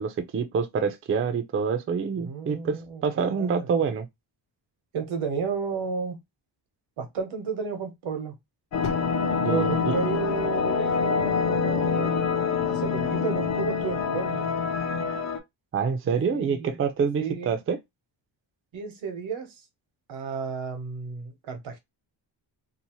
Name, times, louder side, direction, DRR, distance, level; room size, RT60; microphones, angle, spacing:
voice 1, 0.0-4.1 9.4-9.9 15.7-17.8, right 6 dB, 30° right, 0.4 m, -26 dB
voice 2, 2.2-3.7 4.9-6.2 7.0-8.3 9.4-12.2 12.7-14.4 16.0-16.7 17.2-17.6 18.7-19.5 20.1-21.8, right 6 dB, 90° right, 1.0 m, -32 dB
sound 1, 8.7-15.4, left 5 dB, 40° left, 0.5 m, -26 dB
Fire, 8.8-11.6 12.5-12.6, left 5 dB, 60° left, 0.8 m, -42 dB
2.7 x 2.0 x 2.9 m
wide cardioid pair, 165°, 46 cm